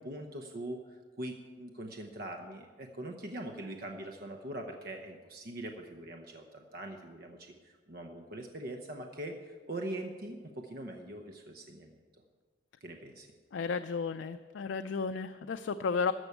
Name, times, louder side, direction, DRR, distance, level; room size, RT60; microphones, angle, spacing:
voice 1, 0.0-7.4 7.6-11.9 12.8-13.3, right 1 dB, 55° right, 3 dB, 0.9 m, -42 dB
voice 2, 13.5-16.1, left 5 dB, 90° left, 9 dB, 0.4 m, -33 dB
14.0 x 6.2 x 8.1 m, 1.5 s
head